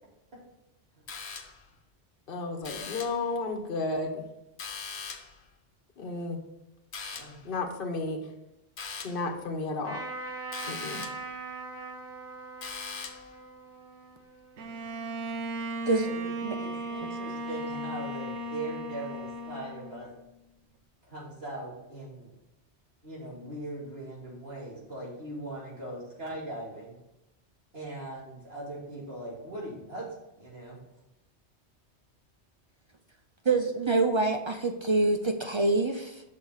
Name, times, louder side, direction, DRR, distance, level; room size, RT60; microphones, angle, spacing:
sound 1, 1.1-1.7 2.6-3.3 4.6-5.4 6.9-7.5 8.8-9.3 10.5-11.3 12.6-13.3, left 5 dB, 75° left, 1.1 m, -40 dB
voice 1, 2.3-4.2 6.0-6.4 7.4-8.2 9.0-10.0 10.7-11.0, left 3 dB, 55° left, 2 dB, 1.0 m, -32 dB
Trumpet, 9.8-15.4, right 3 dB, 10° right, 2.0 m, -42 dB
Bowed string instrument, 14.6-20.3, right 1 dB, 90° right, 1.1 m, -36 dB
voice 2, 16.6-20.1 21.1-22.3 23.0-27.0 27.7-30.1 30.4-30.8, right 1 dB, 65° right, -5 dB, 2.8 m, -40 dB
voice 3, 33.5-36.2, right 2 dB, 45° right, 5 dB, 0.4 m, -26 dB
6.3 x 5.1 x 5.5 m, 0.91 s
omnidirectional pair, 1.1 m